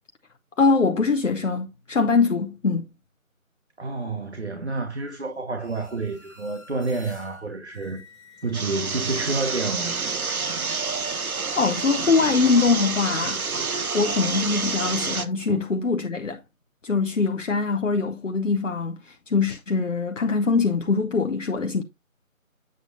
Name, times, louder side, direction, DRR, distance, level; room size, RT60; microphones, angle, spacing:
voice 1, 0.6-2.9 11.5-13.5 13.9-16.4 16.8-21.8, left 4 dB, 60° left, 0.7 m, -23 dB
voice 2, 3.8-8.0 8.4-10.0 15.5-15.6, right 3 dB, 50° right, 1.1 m, -29 dB
sound 1, 5.6-9.1, left 2 dB, ahead, 0.8 m, -50 dB
sound 2, 8.5-15.3, right 4 dB, 85° right, 0.9 m, -28 dB
7.9 x 6.6 x 2.6 m
figure-of-eight pair, 165°, 42 cm